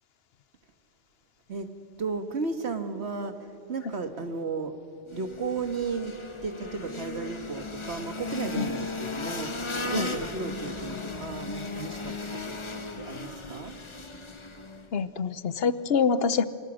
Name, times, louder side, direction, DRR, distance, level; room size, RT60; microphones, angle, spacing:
voice 1, 2.0-4.8 5.1-6.2 6.4-13.7, right 4 dB, 75° right, 8 dB, 1.8 m, -34 dB
sound 1, 5.1-14.9, left 3 dB, 30° left, 1.1 m, -36 dB
voice 2, 14.9-16.5, left 5 dB, 65° left, 14 dB, 1.1 m, -25 dB
28.0 x 27.0 x 6.4 m, 2.6 s
omnidirectional pair, 1.1 m